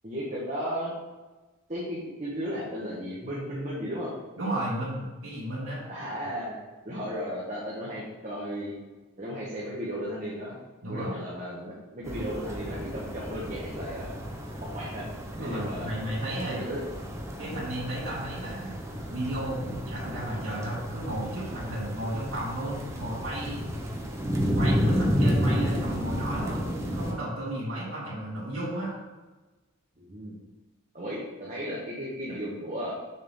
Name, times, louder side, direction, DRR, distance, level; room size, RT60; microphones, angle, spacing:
voice 1, 0.0-0.9 1.7-4.1 5.9-6.6 6.8-8.7 9.2-10.6 10.9-14.2 14.7-15.0 15.4-15.9 16.5-16.8 30.0-30.4 30.9-32.9, equal, 35° right, -6 dB, 1.3 m, -35 dB
voice 2, 4.4-5.8 10.8-11.1 15.3-16.6 17.4-18.8 19.1-23.6 24.5-28.9, right 1 dB, 75° right, -10 dB, 2.3 m, -33 dB
sound 1, 12.0-27.1, equal, 15° right, 0.7 m, -31 dB
6.6 x 6.0 x 3.7 m, 1.2 s
head